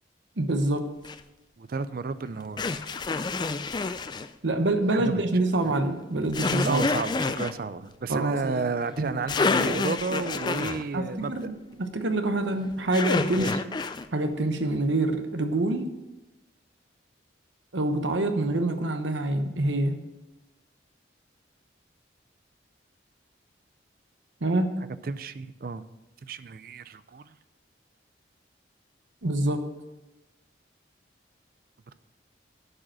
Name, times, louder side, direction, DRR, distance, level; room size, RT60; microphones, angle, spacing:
voice 1, 0.4-0.9 4.4-6.8 8.1-8.7 9.0-9.1 10.9-13.5 14.1-15.9 17.7-19.9 24.4-24.7 29.2-29.6, right 2 dB, 75° right, 7 dB, 1.0 m, -26 dB
sound 1, 1.0-1.2 2.6-4.3 6.3-7.5 9.0-9.1 9.3-10.8 12.9-14.1, left 4 dB, 25° left, 0.3 m, -28 dB
voice 2, 1.6-2.7 4.9-5.2 5.6-5.7 6.6-11.5 13.4-13.6 25.0-25.8 26.2-27.3, right 4 dB, 50° right, 14 dB, 0.4 m, -32 dB
11.0 x 5.1 x 6.2 m, 1.0 s
head